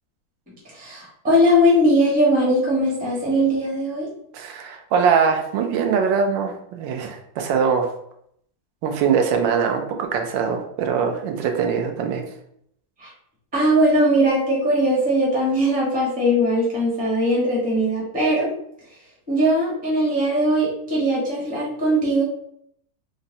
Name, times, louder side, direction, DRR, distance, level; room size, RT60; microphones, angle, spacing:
voice 1, 0.7-4.1 13.0-13.1 13.5-18.5 19.3-22.2, equal, 10° right, -6 dB, 0.5 m, -20 dB
voice 2, 4.3-7.9 8.8-12.2, right 6 dB, 85° right, 3 dB, 1.3 m, -22 dB
3.9 x 2.0 x 2.6 m, 0.71 s
omnidirectional pair, 2.0 m